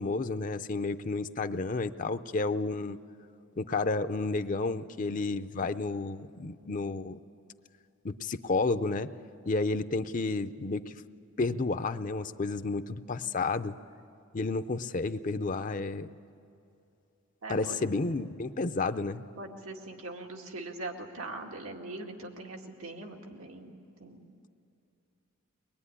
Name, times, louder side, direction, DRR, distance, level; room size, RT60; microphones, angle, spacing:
voice 1, 0.0-3.0 3.6-7.2 8.0-9.1 9.5-11.0 11.4-13.8 14.3-16.1 17.5-19.3, left 3 dB, 40° left, 11 dB, 0.6 m, -31 dB
voice 2, 17.4-17.8 19.4-24.5, right 2 dB, 85° right, 2 dB, 2.1 m, -42 dB
23.5 x 20.5 x 9.9 m, 2.6 s
head